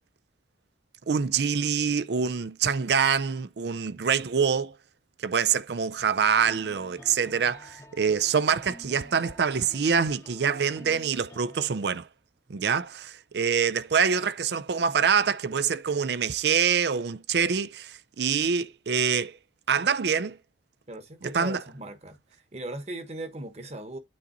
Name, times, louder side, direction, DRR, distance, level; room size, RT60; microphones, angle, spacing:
voice 1, 1.1-4.7 5.2-12.1 12.5-19.3 19.7-20.4 21.2-21.6, right 6 dB, 70° right, 0.5 m, -25 dB
sound 1, 6.4-11.7, left 1 dB, 15° left, 0.8 m, -49 dB
voice 2, 20.9-22.2 22.5-24.0, right 1 dB, 35° right, 1.2 m, -38 dB
8.7 x 3.9 x 3.9 m
head